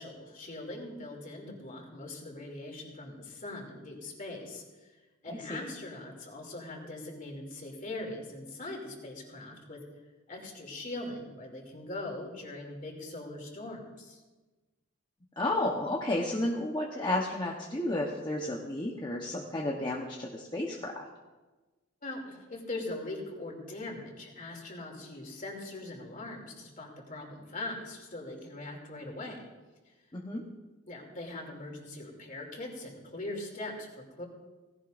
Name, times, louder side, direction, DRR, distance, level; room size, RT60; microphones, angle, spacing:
voice 1, 0.0-5.0 5.2-9.8 10.3-14.2 22.0-29.5 30.9-34.2, left 2 dB, 40° left, 0 dB, 2.8 m, -41 dB
voice 2, 5.3-5.6 15.4-20.9 30.1-30.4, left 1 dB, 20° left, -2 dB, 1.0 m, -32 dB
17.5 x 16.5 x 2.6 m, 1.2 s
head